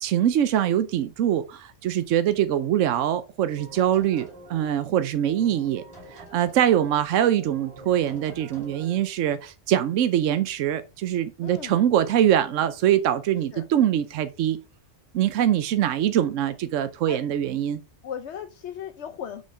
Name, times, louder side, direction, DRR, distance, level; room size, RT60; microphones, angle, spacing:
voice 1, 0.0-5.8 6.1-14.6 15.1-17.8, right 11 dB, 85° right, 1.0 m, -23 dB
sound 1, 3.5-4.8 5.3-7.0 7.4-9.1, right 1 dB, 20° right, 3.1 m, -46 dB
voice 2, 11.4-11.8 13.5-13.7 17.1-17.2 18.0-19.4, left 8 dB, 70° left, 1.0 m, -36 dB
6.4 x 5.5 x 4.6 m
omnidirectional pair, 1.3 m